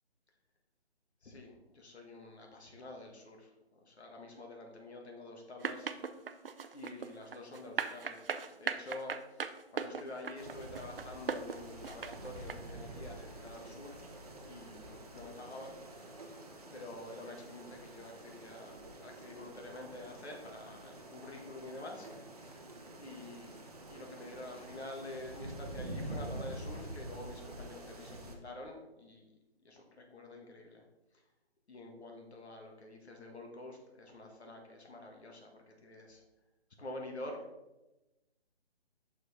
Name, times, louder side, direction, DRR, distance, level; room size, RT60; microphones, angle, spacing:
voice 1, 1.2-5.9 6.7-8.2 8.6-14.0 14.5-15.8 16.7-22.5 23.0-23.6 23.9-29.3 29.6-30.8 31.7-36.2 36.8-37.4, left 2 dB, 85° left, 1 dB, 1.6 m, -48 dB
sound 1, 5.6-12.5, right 6 dB, 60° right, 0.5 m, -38 dB
sound 2, 10.4-28.4, right 1 dB, 35° right, 0.8 m, -47 dB
6.2 x 4.9 x 4.2 m, 1.0 s
hypercardioid pair, 175°, 32 cm